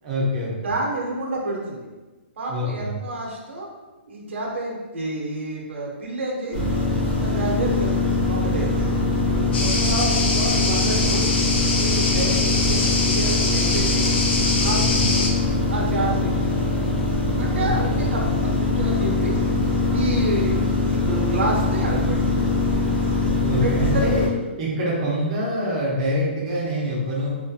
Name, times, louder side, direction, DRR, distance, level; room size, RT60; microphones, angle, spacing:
voice 1, 0.0-0.7 2.5-3.0 9.3-9.8 14.6-15.1 17.5-18.0 23.4-24.3 24.6-27.4, equal, 30° right, -5 dB, 0.7 m, -26 dB
voice 2, 0.6-1.8 2.4-3.7 4.1-6.6 7.2-8.7 9.6-11.3 11.8-14.1 14.6-15.3 15.7-16.5 17.4-19.4 19.9-22.6 23.6-24.1, right 2 dB, 75° right, -3 dB, 0.7 m, -29 dB
sound 1, 6.5-24.3, left 3 dB, ahead, 1.2 m, -22 dB
sound 2, 9.5-15.3, left 3 dB, 60° left, 0.5 m, -24 dB
2.5 x 2.3 x 2.7 m, 1.2 s
hypercardioid pair, 170°, 7 cm